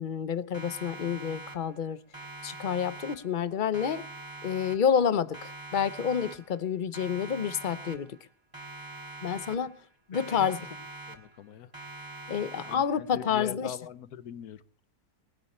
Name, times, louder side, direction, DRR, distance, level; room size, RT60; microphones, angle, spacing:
voice 1, 0.0-2.0 2.4-4.1 4.4-8.2 9.2-9.8 10.1-10.6 12.3-13.7, left 7 dB, 40° left, 0.8 m, -29 dB
Siren, 0.5-1.9 2.1-3.5 3.7-5.1 5.3-6.7 6.9-8.3 8.5-9.9 10.1-11.5 11.7-13.1, right 2 dB, 15° right, 2.3 m, -44 dB
voice 2, 10.1-10.5 11.1-11.7 12.7-14.6, left 9 dB, 75° left, 1.4 m, -42 dB
22.0 x 11.0 x 4.3 m
omnidirectional pair, 1.7 m